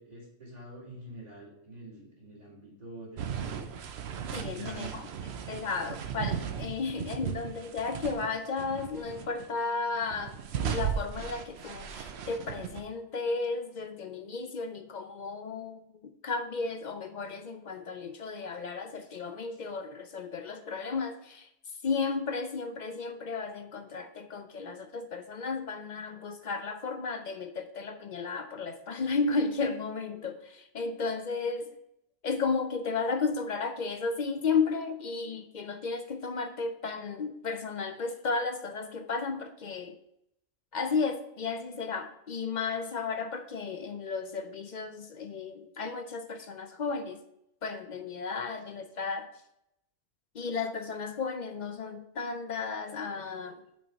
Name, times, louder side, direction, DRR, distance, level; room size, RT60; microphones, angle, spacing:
voice 1, 0.0-3.7 4.4-5.0, right 1 dB, 30° right, -4 dB, 2.4 m, -46 dB
sound 1, 3.2-8.3 8.6-9.5 9.9-12.8, right 8 dB, 60° right, 0.8 m, -36 dB
voice 2, 4.3-5.1 5.5-21.5 21.8-31.8 32.2-40.0 40.7-47.2 47.6-49.3 50.3-53.6, left 4 dB, 55° left, 8 dB, 0.5 m, -34 dB
6.2 x 4.5 x 6.1 m, 0.79 s
omnidirectional pair, 1.3 m